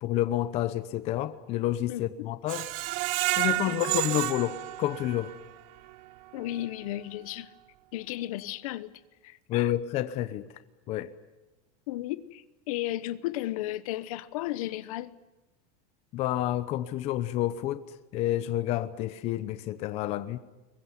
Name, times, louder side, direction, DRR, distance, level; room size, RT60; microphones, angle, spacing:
voice 1, 0.0-2.7 3.4-5.3 9.5-10.5 10.9-11.1 16.1-17.9 18.1-20.4, left 13 dB, 30° left, 0.9 m, -29 dB
voice 2, 1.9-2.3 3.6-4.0 6.3-7.5 7.9-8.9 9.2-9.7 11.9-15.1, left 15 dB, 65° left, 1.1 m, -34 dB
Screech, 2.5-5.5 5.9-6.0 6.4-6.5, right 19 dB, 40° right, 0.8 m, -30 dB
23.0 x 21.0 x 9.7 m
supercardioid pair, 170°, 20 cm